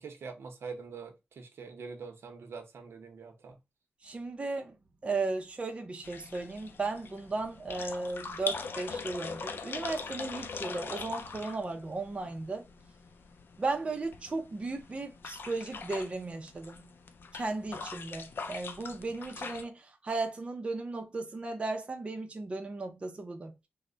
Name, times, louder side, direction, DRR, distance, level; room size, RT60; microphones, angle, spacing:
voice 1, 0.0-3.6, right 5 dB, 85° right, 0.7 m, -44 dB
voice 2, 4.0-4.8 5.0-12.6 13.6-16.8 17.3-23.5, right 3 dB, 30° right, 0.5 m, -35 dB
sound 1, 6.0-19.6, left 4 dB, 60° left, 0.4 m, -42 dB
3.2 x 2.1 x 3.7 m
wide cardioid pair, 155°, 4 cm